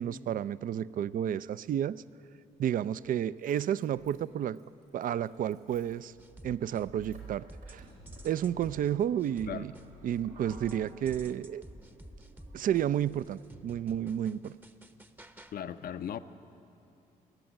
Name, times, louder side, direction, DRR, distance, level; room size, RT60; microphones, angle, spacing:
voice 1, 0.0-2.0 2.6-4.6 4.9-6.1 6.4-7.8 8.2-9.7 10.0-11.6 12.5-14.6, right 10 dB, 55° right, 18 dB, 0.4 m, -31 dB
Motor vehicle (road), 3.0-14.1, right 4 dB, 80° right, 4.5 m, -54 dB
sound 1, 6.2-7.2 7.5-10.2 10.5-15.5, right 1 dB, 10° right, 0.8 m, -51 dB
voice 2, 15.5-16.2, left 9 dB, 60° left, 12 dB, 0.6 m, -37 dB
19.5 x 7.8 x 9.2 m, 2.8 s
hypercardioid pair, 50°, 17 cm